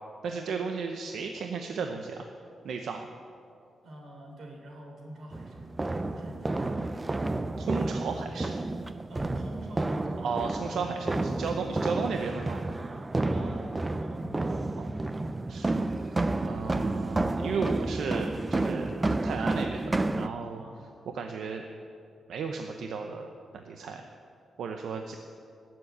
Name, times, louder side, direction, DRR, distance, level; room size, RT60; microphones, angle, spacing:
voice 1, 0.2-2.3 2.6-3.1 7.6-8.5 10.2-12.6 14.8-14.9 15.5-15.9 16.4-18.9 19.2-20.6 21.1-21.6 22.3-23.3 23.5-24.1 24.6-25.2, right 5 dB, 70° right, 4 dB, 0.8 m, -34 dB
voice 2, 3.8-6.9 9.1-10.3 13.3-14.6 20.6-20.8, right 1 dB, 50° right, 1 dB, 3.3 m, -46 dB
sound 1, 5.3-20.3, right 2 dB, 15° right, 0.4 m, -30 dB
19.0 x 7.6 x 8.6 m, 2.5 s
wide cardioid pair, 175°, 0 cm